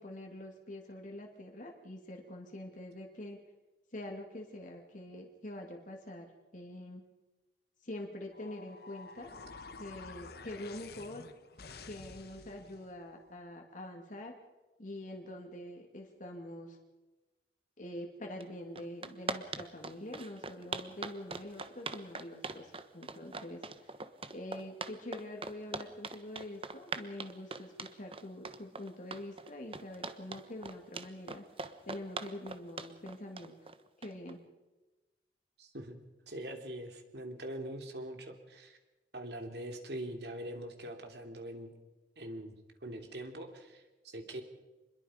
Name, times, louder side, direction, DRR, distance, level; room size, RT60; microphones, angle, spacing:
voice 1, 0.0-3.4 3.9-6.3 6.5-7.0 7.8-9.3 9.8-11.2 11.8-14.4 14.8-16.8 17.8-23.9 24.3-31.4 31.9-33.5 34.0-34.4, left 1 dB, 50° left, 1 dB, 2.6 m, -45 dB
sound 1, 8.3-12.9, left 4 dB, 65° left, 1.4 m, -50 dB
sound 2, 18.4-18.5 18.7-34.3, right 4 dB, 35° right, 1.2 m, -41 dB
voice 2, 35.6-36.0 36.3-38.8 39.1-41.7 42.2-42.5 42.8-44.4, right 1 dB, 70° right, 4 dB, 3.2 m, -43 dB
27.0 x 21.5 x 5.2 m, 1.1 s
head